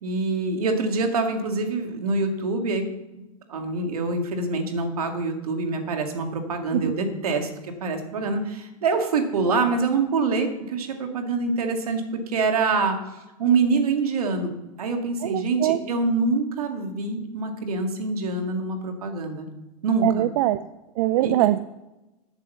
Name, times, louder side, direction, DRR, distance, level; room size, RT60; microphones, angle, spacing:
voice 1, 0.0-2.9 3.1-3.2 3.5-7.5 7.8-13.0 13.4-14.5 14.8-19.5 19.8-20.3 21.2-21.3, right 3 dB, 85° right, 4 dB, 2.2 m, -25 dB
voice 2, 15.2-15.8 20.0-20.6 21.0-21.6, right 15 dB, 60° right, 13 dB, 0.5 m, -22 dB
9.0 x 8.2 x 7.1 m, 1.0 s
hypercardioid pair, 110°, 19 cm